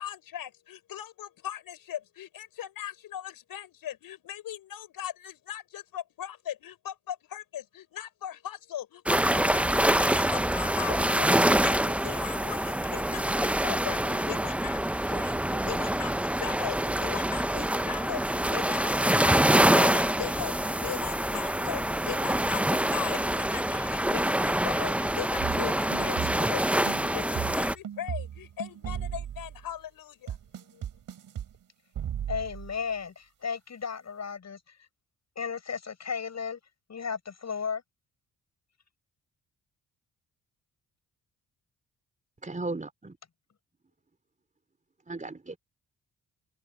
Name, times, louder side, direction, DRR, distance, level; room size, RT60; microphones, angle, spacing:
voice 1, 0.0-30.4 30.7-30.8, left 11 dB, 75° left, 6.7 m, -39 dB
sound 1, 9.1-27.7, right 1 dB, 5° right, 0.8 m, -26 dB
sound 2, 25.4-26.6 26.9-29.7 30.3-31.5 31.9-32.8, right 9 dB, 70° right, 6.2 m, -36 dB
voice 2, 32.3-34.6 35.4-36.6 36.9-37.8, left 6 dB, 50° left, 7.3 m, -34 dB
voice 3, 42.4-43.1 45.1-45.6, right 2 dB, 20° right, 4.2 m, -35 dB
supercardioid pair, 60°, 35 cm